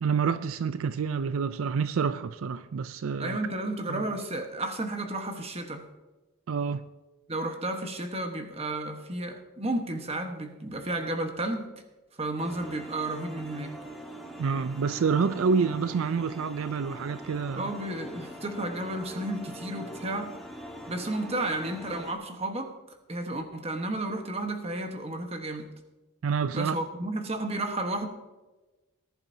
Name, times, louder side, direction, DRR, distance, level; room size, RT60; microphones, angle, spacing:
voice 1, 0.0-3.4 3.9-4.1 6.5-6.8 14.4-17.7 26.2-26.7, right 5 dB, 70° right, 0.4 m, -28 dB
voice 2, 3.2-5.9 7.3-11.8 12.2-13.7 17.6-20.4 20.9-22.7 23.1-25.7 26.5-28.1, right 1 dB, 30° right, 1.2 m, -32 dB
sound 1, 12.4-22.1, right 1 dB, ahead, 1.4 m, -43 dB
19.0 x 11.0 x 2.8 m
head